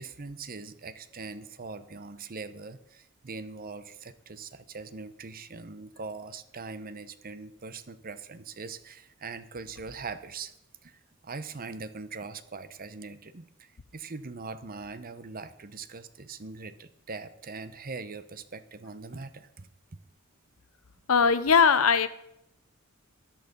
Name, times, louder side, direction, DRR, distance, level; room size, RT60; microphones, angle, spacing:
voice 1, 0.0-10.5 10.8-19.7, right 4 dB, 45° right, 13 dB, 0.8 m, -41 dB
voice 2, 21.1-22.1, left 6 dB, 80° left, 13 dB, 0.9 m, -20 dB
13.5 x 10.5 x 5.3 m, 0.78 s
head